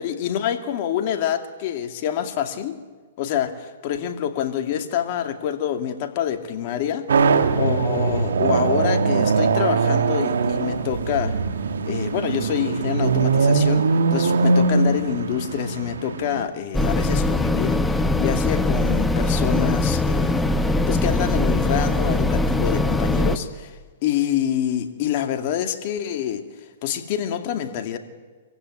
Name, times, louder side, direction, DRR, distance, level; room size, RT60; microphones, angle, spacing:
voice 1, 0.0-2.8 3.2-7.1 7.5-11.4 11.8-26.4 26.8-28.0, left 10 dB, 50° left, 6 dB, 2.4 m, -26 dB
sound 1, 7.1-16.4, right 4 dB, 85° right, 1.7 m, -21 dB
sound 2, 16.7-23.4, left 2 dB, 5° left, 1.2 m, -21 dB
25.5 x 15.5 x 9.8 m, 1.4 s
hypercardioid pair, 135°, 0 cm